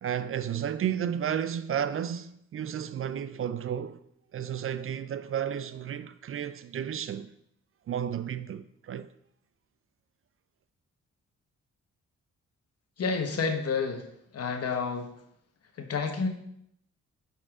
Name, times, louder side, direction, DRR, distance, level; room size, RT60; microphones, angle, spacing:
voice 1, 0.0-4.0 4.3-7.3 7.9-9.1, right 9 dB, 50° right, 0.4 m, -32 dB
voice 2, 13.0-14.1 14.3-15.1 15.8-16.3, left 5 dB, 55° left, 1.2 m, -29 dB
9.3 x 4.3 x 3.7 m
cardioid pair, 80°, 29 cm